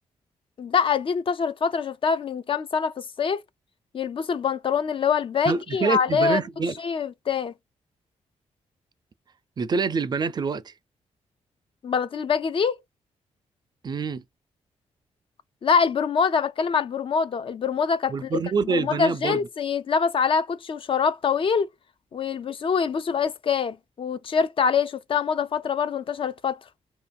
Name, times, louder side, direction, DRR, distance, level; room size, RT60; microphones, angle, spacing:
voice 1, 0.6-3.4 3.9-6.4 6.8-7.5 11.8-12.8 15.6-18.4 18.6-21.7 22.1-26.6, left 6 dB, 45° left, 0.4 m, -24 dB
voice 2, 5.5-6.8 9.6-10.7 13.8-14.2 18.1-19.4, right 5 dB, 35° right, 0.4 m, -26 dB
2.7 x 2.6 x 2.3 m
cardioid pair, 75°, 12 cm